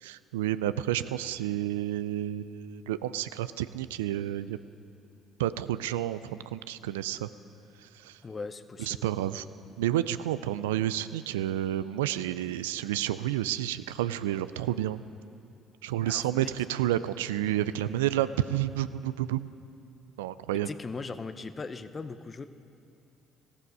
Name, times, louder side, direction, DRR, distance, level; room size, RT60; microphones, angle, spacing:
voice 1, 0.0-4.6 5.4-7.3 7.8-8.2 8.8-9.5 9.8-15.0 15.8-19.5 20.2-20.7, right 13 dB, 85° right, 14 dB, 0.3 m, -30 dB
voice 2, 8.2-9.1 16.1-16.5 20.6-22.5, left 4 dB, 35° left, 12 dB, 0.7 m, -39 dB
15.0 x 14.0 x 5.4 m, 2.6 s
hypercardioid pair, 55°, 0 cm